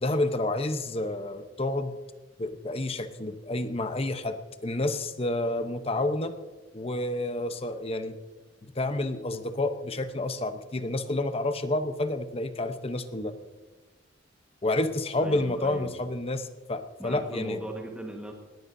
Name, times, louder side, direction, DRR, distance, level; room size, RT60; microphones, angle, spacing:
voice 1, 0.0-1.9 2.4-4.4 4.6-6.3 6.7-8.2 8.6-13.3 14.6-17.6, left 2 dB, 30° left, 9 dB, 0.9 m, -29 dB
voice 2, 15.2-15.9 17.0-18.3, right 1 dB, 5° right, 0 dB, 1.5 m, -39 dB
18.5 x 18.5 x 2.7 m, 1.3 s
head